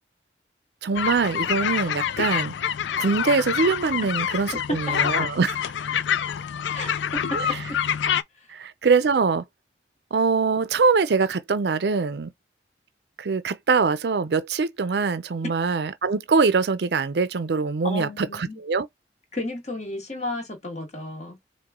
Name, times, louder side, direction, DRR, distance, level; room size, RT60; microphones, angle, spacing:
voice 1, 0.8-2.5 3.0-5.6 7.3-7.6 8.5-9.4 10.1-12.3 13.2-18.9, right 4 dB, 70° right, 0.5 m, -23 dB
sound 1, 1.0-8.2, left 8 dB, 90° left, 0.4 m, -26 dB
voice 2, 6.7-7.4 17.8-18.6 19.3-21.4, left 2 dB, 40° left, 1.5 m, -33 dB
4.8 x 2.2 x 3.6 m
head